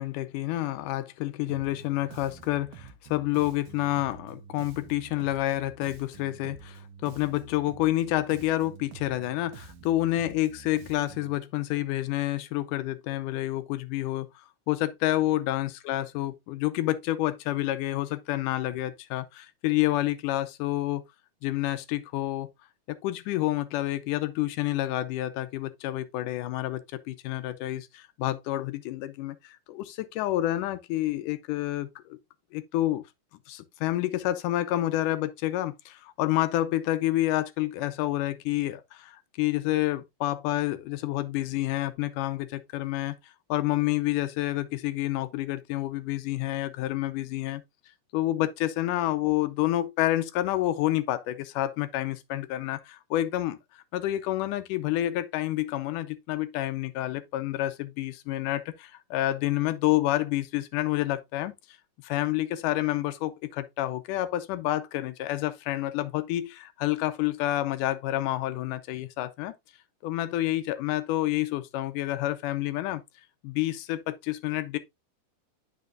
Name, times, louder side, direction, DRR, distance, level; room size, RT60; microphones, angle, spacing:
voice 1, 0.0-14.3 14.7-21.0 21.4-22.5 22.9-26.8 27.1-32.2 32.5-33.0 33.5-47.6 48.1-61.5 62.0-69.5 70.0-73.0 73.4-74.8, left 15 dB, 85° left, 2.3 m, -29 dB
Bass guitar, 1.5-11.4, right 7 dB, 80° right, 2.4 m, -48 dB
9.1 x 6.0 x 2.5 m
omnidirectional pair, 3.6 m